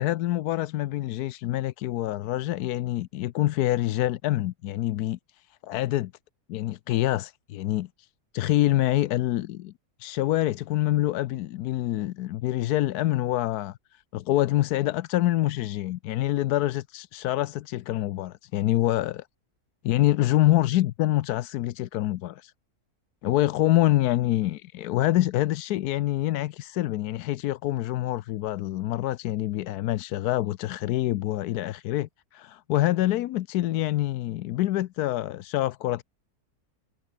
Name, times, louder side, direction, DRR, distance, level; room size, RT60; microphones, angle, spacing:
voice 1, 0.0-5.2 5.6-6.1 6.5-7.9 8.3-9.7 10.0-19.3 19.8-22.5 23.2-36.0, left 15 dB, 85° left, 1.1 m, -26 dB
omnidirectional pair, 1.6 m